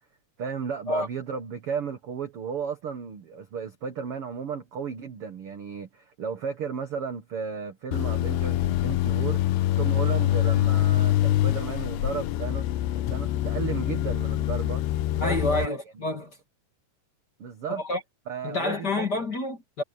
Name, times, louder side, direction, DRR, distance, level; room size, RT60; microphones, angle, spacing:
voice 1, 0.4-12.7 12.9-14.8 15.1-16.0 17.4-17.8 18.3-19.1, right 6 dB, 75° right, 1.3 m, -34 dB
sound 1, 7.9-15.7, left 14 dB, 90° left, 3.1 m, -25 dB
voice 2, 15.2-16.4 17.7-18.0 18.4-19.8, left 2 dB, 30° left, 2.2 m, -28 dB
omnidirectional pair, 4.7 m